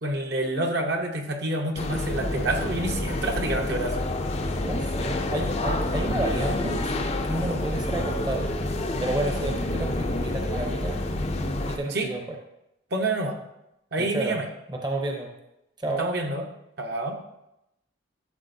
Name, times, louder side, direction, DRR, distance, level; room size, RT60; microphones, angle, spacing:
voice 1, 0.0-4.0 11.9-12.1 12.9-13.4 13.9-14.4 16.0-16.4 16.8-17.2, right 2 dB, 55° right, 2 dB, 0.9 m, -28 dB
sound 1, 1.8-11.8, left 2 dB, 30° left, 0.5 m, -28 dB
voice 2, 4.7-8.5 9.0-12.2 14.0-14.4 14.7-15.3 15.8-16.0, right 2 dB, 20° right, 1 dB, 0.8 m, -31 dB
12.0 x 6.8 x 2.7 m, 0.86 s
head